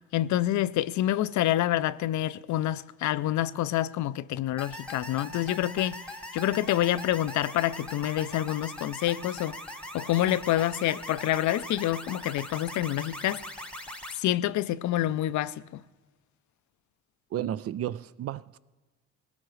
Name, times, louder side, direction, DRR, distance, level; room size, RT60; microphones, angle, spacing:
voice 1, 0.1-6.0 6.3-9.6 9.9-13.4 14.2-15.8, left 13 dB, 70° left, 0.5 m, -27 dB
sound 1, 4.6-14.2, left 1 dB, 5° left, 1.1 m, -41 dB
voice 2, 17.3-18.6, right 11 dB, 50° right, 0.4 m, -33 dB
20.0 x 17.5 x 3.2 m
cardioid pair, 90°, 30 cm